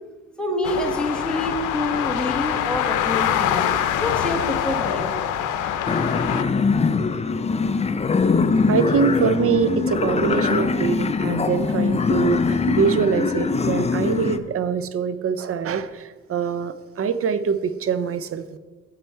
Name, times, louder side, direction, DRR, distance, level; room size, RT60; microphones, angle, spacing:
voice 1, 0.4-3.6 4.0-5.1, left 1 dB, 5° left, 0 dB, 1.9 m, -26 dB
sound 1, 0.6-6.4, left 10 dB, 90° left, 0.7 m, -24 dB
sound 2, 5.9-14.4, left 4 dB, 20° left, 0.5 m, -22 dB
voice 2, 8.7-18.6, right 6 dB, 50° right, 14 dB, 0.6 m, -24 dB
10.0 x 7.6 x 4.5 m, 1.3 s
cardioid pair, 90°, 30 cm